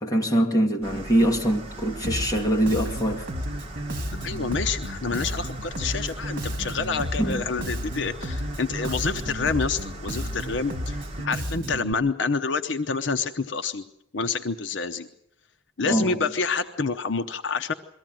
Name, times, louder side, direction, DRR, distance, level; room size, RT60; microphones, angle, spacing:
voice 1, 0.0-3.3 7.2-7.5 15.9-16.2, right 1 dB, 20° left, 2.1 m, -23 dB
sound 1, 0.8-11.3, right 1 dB, 30° right, 1.8 m, -39 dB
Bass guitar, 2.0-11.9, equal, 45° right, 2.2 m, -32 dB
voice 2, 4.2-11.0 11.2-13.8 14.1-15.1 15.8-17.7, left 4 dB, 65° left, 0.8 m, -28 dB
22.5 x 15.5 x 9.0 m
head